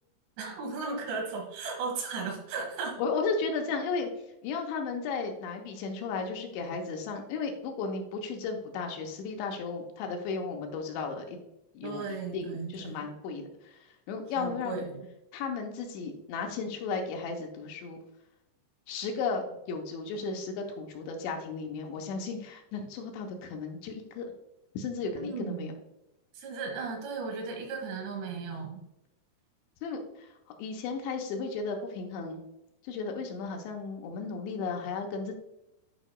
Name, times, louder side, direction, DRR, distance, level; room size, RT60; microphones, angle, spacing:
voice 1, 0.4-2.9 11.8-13.1 14.4-15.1 25.1-25.7 26.3-28.8, right 4 dB, 70° right, 1 dB, 3.5 m, -36 dB
voice 2, 3.0-4.1 4.4-11.4 11.7-12.0 12.3-13.8 14.1-14.8 15.3-18.0 18.9-24.3 24.7-25.7 29.8-30.3 30.6-32.4 32.8-35.3, left 4 dB, 85° left, 3 dB, 3.0 m, -34 dB
11.0 x 4.8 x 2.2 m, 0.88 s
omnidirectional pair, 5.3 m